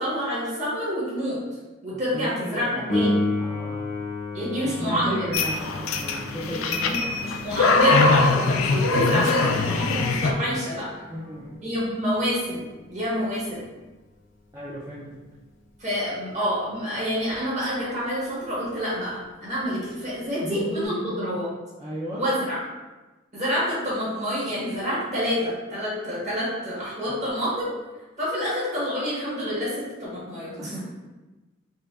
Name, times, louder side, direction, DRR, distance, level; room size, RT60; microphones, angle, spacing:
voice 1, 0.0-1.4 1.8-3.2 4.3-5.2 6.4-6.6 6.9-10.9 11.6-13.6 15.8-21.5 22.1-22.6 23.3-27.7 28.2-30.7, equal, 35° right, -8 dB, 1.3 m, -28 dB
voice 2, 1.9-2.9 3.4-3.9 4.6-7.4 11.1-11.6 14.5-15.2 20.4-21.4 21.8-22.2 27.1-27.2 30.6-30.9, right 1 dB, 15° right, -9 dB, 0.5 m, -35 dB
Piano, 2.9-13.3 20.8-20.9, left 2 dB, 40° left, 0.6 m, -33 dB
sound 1, 5.3-10.3, left 3 dB, 85° left, 0.3 m, -22 dB
5.0 x 2.2 x 2.4 m, 1.2 s
head